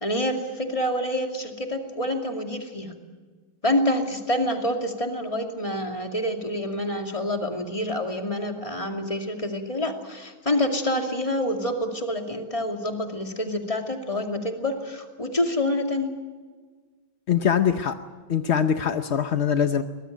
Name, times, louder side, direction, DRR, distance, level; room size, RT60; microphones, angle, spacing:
voice 1, 0.0-2.9 3.6-16.1, left 1 dB, 15° left, 3 dB, 2.4 m, -27 dB
voice 2, 17.3-18.0 18.3-19.8, left 8 dB, 60° left, 8 dB, 0.7 m, -22 dB
23.0 x 20.0 x 9.2 m, 1.4 s
omnidirectional pair, 2.2 m